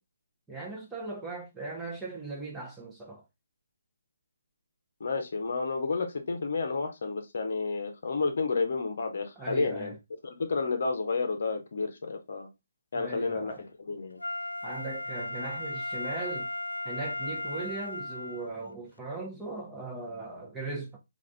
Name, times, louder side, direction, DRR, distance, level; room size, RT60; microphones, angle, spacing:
voice 1, 0.5-3.2 9.4-10.0 12.9-13.6 14.6-16.5 16.8-21.0, right 3 dB, 5° right, 0.8 m, -38 dB
voice 2, 5.0-9.9 10.2-12.5 12.9-13.6 13.9-14.2, left 4 dB, 50° left, 0.8 m, -31 dB
Wind instrument woodwind instrument, 14.2-18.5 19.0-19.1, left 2 dB, 75° left, 0.3 m, -36 dB
3.6 x 2.5 x 3.2 m
figure-of-eight pair, 140°, 0 cm